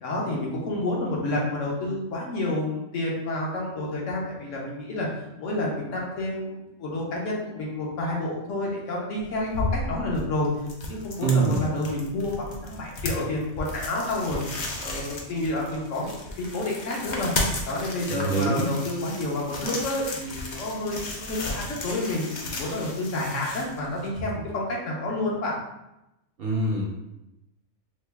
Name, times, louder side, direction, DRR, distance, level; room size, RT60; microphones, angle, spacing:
voice 1, 0.0-5.1 5.4-10.5 10.9-14.4 14.8-17.3 17.7-25.5, left 2 dB, 75° left, -3 dB, 1.1 m, -29 dB
sound 1, 9.2-24.3, left 2 dB, 55° left, 0.5 m, -34 dB
voice 2, 11.2-11.6 18.1-18.7 26.4-27.1, right 3 dB, 60° right, -2 dB, 0.7 m, -24 dB
3.1 x 2.2 x 3.4 m, 0.91 s
omnidirectional pair, 1.3 m